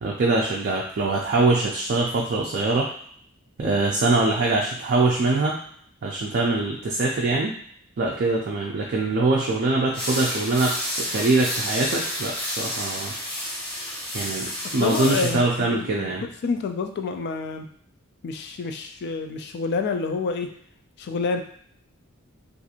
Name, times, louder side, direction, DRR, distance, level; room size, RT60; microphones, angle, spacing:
voice 1, 0.0-2.9 3.6-5.5 6.0-7.5 8.0-10.8 11.1-13.1 14.1-16.2, right 3 dB, 50° right, -2 dB, 0.4 m, -23 dB
sound 1, 9.9-15.4, equal, 25° left, 1.3 m, -30 dB
voice 2, 14.6-16.1 16.4-17.7 18.2-20.5 21.0-21.4, left 4 dB, 50° left, 6 dB, 0.3 m, -28 dB
2.8 x 2.5 x 2.4 m, 0.62 s
head